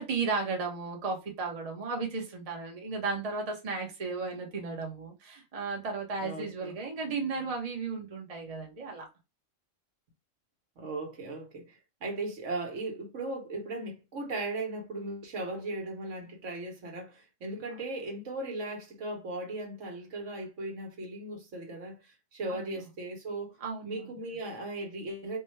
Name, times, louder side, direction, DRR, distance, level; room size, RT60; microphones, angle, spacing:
voice 1, 0.0-9.1 22.5-22.9 23.6-24.2, right 4 dB, 35° right, 0.8 m, -34 dB
voice 2, 6.2-6.8 10.8-23.6 23.8-25.4, right 2 dB, 65° right, 1.3 m, -37 dB
4.6 x 2.2 x 3.1 m
omnidirectional pair, 1.4 m